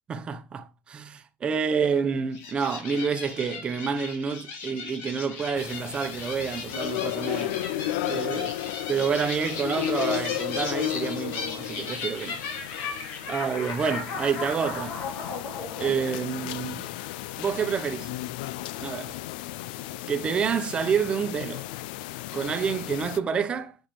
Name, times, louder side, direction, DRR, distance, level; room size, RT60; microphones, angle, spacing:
voice 1, 0.1-7.6 8.1-8.5 8.9-12.4 13.3-15.0 15.8-16.9 17.4-18.1 18.8-19.2 20.1-21.7 22.3-23.8, right 6 dB, 20° right, 0.9 m, -28 dB
sound 1, 2.3-17.0, left 4 dB, 50° left, 2.9 m, -37 dB
sound 2, 5.6-23.2, left 15 dB, 75° left, 0.4 m, -34 dB
8.6 x 5.8 x 3.2 m
cardioid pair, 160°, 5 cm